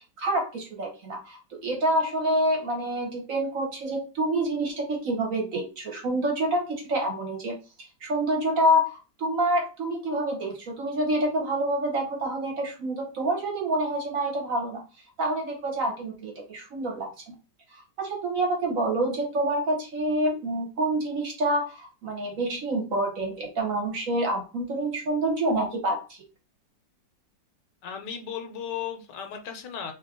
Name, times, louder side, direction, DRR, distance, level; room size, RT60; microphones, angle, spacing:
voice 1, 0.0-7.6 8.0-14.8 15.2-17.3 17.7-26.2, right 1 dB, 55° right, 1.3 m, -27 dB
voice 2, 27.8-29.9, left 8 dB, 75° left, 1.2 m, -35 dB
3.0 x 2.7 x 3.6 m
omnidirectional pair, 2.0 m